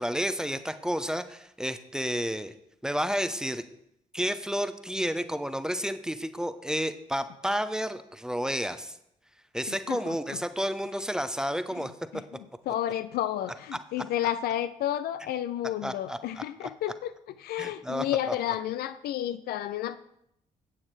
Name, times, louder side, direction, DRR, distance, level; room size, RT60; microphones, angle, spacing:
voice 1, 0.0-2.5 2.8-3.6 4.1-9.0 9.5-11.9 15.8-16.7 17.6-18.4, equal, 5° right, 11 dB, 0.7 m, -31 dB
voice 2, 9.9-10.4 11.8-11.9 12.1-12.2 12.7-17.1 17.4-20.0, left 12 dB, 55° left, 13 dB, 0.4 m, -31 dB
9.8 x 8.8 x 3.3 m, 0.76 s
figure-of-eight pair, 40°, 19 cm